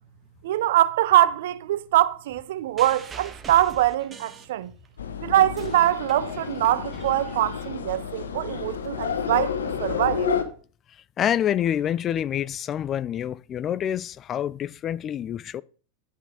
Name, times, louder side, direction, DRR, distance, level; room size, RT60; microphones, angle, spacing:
voice 1, 0.4-4.7 5.2-10.3, right 13 dB, 70° right, 0.7 m, -23 dB
sound 1, 2.8-5.0 5.3-8.0 8.8-8.9, right 4 dB, 25° right, 1.5 m, -44 dB
sound 2, 5.0-10.4, left 7 dB, 90° left, 1.3 m, -30 dB
voice 2, 11.2-15.6, left 10 dB, 35° left, 0.4 m, -27 dB
11.0 x 5.6 x 4.9 m
hypercardioid pair, 105°, 0 cm